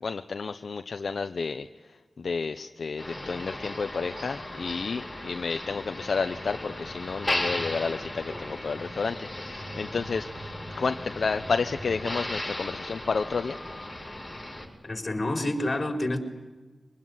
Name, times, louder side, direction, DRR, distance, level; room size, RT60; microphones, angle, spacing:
voice 1, 0.0-1.7 2.2-13.6, left 4 dB, 70° left, 0.8 m, -31 dB
Motor vehicle (road), 3.0-14.7, left 1 dB, 5° left, 7.1 m, -36 dB
voice 2, 14.8-16.2, left 1 dB, 40° left, 4.5 m, -28 dB
25.0 x 20.0 x 9.6 m
cardioid pair, 60°, 0 cm